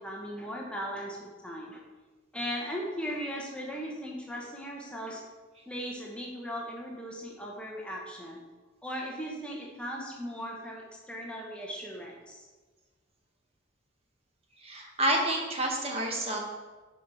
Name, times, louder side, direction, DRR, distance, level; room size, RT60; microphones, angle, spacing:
voice 1, 0.0-1.8 2.3-5.2 5.7-8.4 8.8-12.4, equal, 5° left, -2 dB, 0.9 m, -38 dB
voice 2, 14.6-16.4, right 1 dB, 30° right, 0 dB, 1.1 m, -29 dB
8.3 x 5.4 x 4.4 m, 1.3 s
head